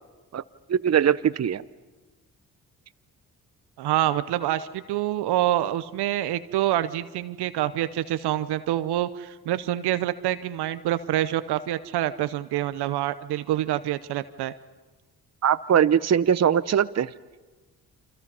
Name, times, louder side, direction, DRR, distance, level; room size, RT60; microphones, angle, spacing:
voice 1, 0.7-1.6 15.4-17.1, right 9 dB, 40° right, 16 dB, 0.8 m, -21 dB
voice 2, 3.8-14.5, right 13 dB, 80° right, 14 dB, 0.8 m, -26 dB
29.0 x 25.0 x 5.5 m, 1.3 s
supercardioid pair, 45°, 39 cm